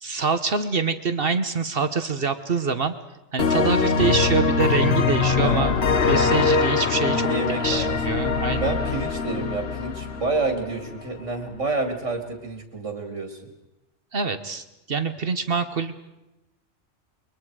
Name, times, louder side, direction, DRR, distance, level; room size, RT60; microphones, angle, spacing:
voice 1, 0.0-2.9 3.3-5.8 6.1-7.3 7.6-8.8 14.1-16.0, right 5 dB, 50° right, 10 dB, 1.2 m, -25 dB
sound 1, 3.4-11.0, left 5 dB, 60° left, 1.4 m, -23 dB
voice 2, 5.4-5.7 7.1-8.0 8.6-13.5, right 3 dB, 80° right, 5 dB, 2.8 m, -29 dB
28.5 x 23.0 x 4.8 m, 0.93 s
omnidirectional pair, 1.2 m